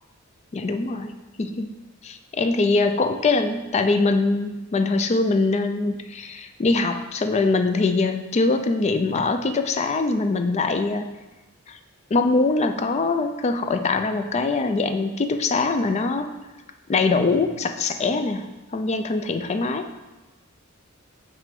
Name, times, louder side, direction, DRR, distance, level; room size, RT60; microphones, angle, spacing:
voice 1, 0.5-1.7 2.0-11.1 11.7-11.8 12.1-16.3 16.9-19.9, left 3 dB, 30° left, 8 dB, 0.4 m, -23 dB
5.9 x 3.3 x 5.2 m, 1.1 s
head